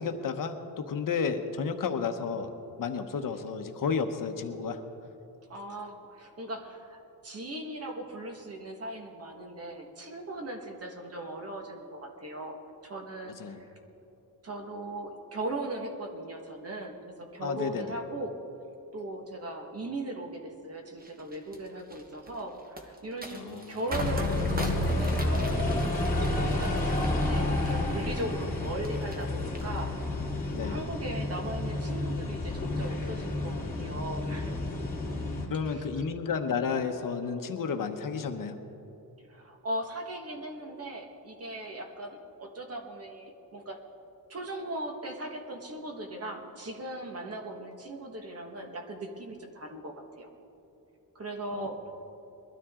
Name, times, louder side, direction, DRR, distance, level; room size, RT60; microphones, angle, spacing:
voice 1, 0.0-2.5 2.8-4.8 13.4-13.6 17.4-17.9 23.3-23.8 30.5-30.8 35.5-38.6 51.6-51.7, left 6 dB, 60° left, 7 dB, 1.0 m, -32 dB
voice 2, 5.5-13.7 14.4-18.4 18.9-25.9 26.2-30.3 30.6-33.5 33.8-34.6 35.6-36.1 39.3-43.8 44.3-50.3 51.1-51.8, right 1 dB, 40° right, 3 dB, 1.5 m, -39 dB
sound 1, 21.0-29.2 29.5-30.2 30.6-30.9, right 1 dB, 25° right, 1.2 m, -42 dB
sound 2, 23.9-35.5, left 2 dB, 20° left, 2.8 m, -30 dB
21.5 x 13.0 x 3.7 m, 2.9 s
wide cardioid pair, 150°, 38 cm